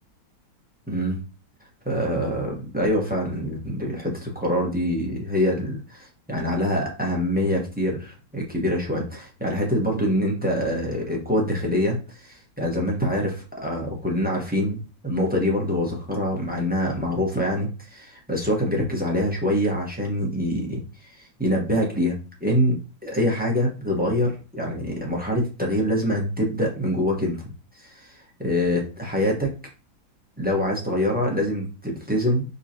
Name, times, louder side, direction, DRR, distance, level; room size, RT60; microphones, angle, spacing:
voice 1, 0.9-1.2 1.8-27.4 27.7-29.5 30.4-32.4, equal, 10° right, -1 dB, 0.6 m, -25 dB
4.8 x 3.9 x 2.8 m, 0.32 s
omnidirectional pair, 2.2 m